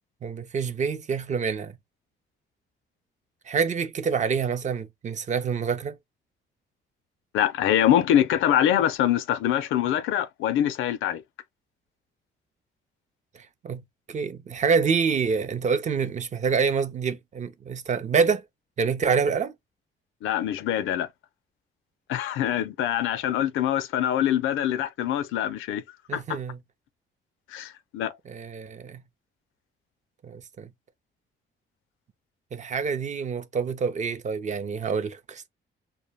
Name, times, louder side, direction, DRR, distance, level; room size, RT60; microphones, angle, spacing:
voice 1, 0.2-1.8 3.5-6.0 13.3-18.4 18.8-19.5 26.1-26.6 28.3-29.0 30.2-30.7 32.5-35.5, right 5 dB, 35° right, 0.5 m, -27 dB
voice 2, 7.3-11.2 20.2-21.1 22.1-25.8 26.1-26.4 27.5-28.1, left 11 dB, 85° left, 0.5 m, -24 dB
2.2 x 2.0 x 3.2 m
cardioid pair, 90°, 20 cm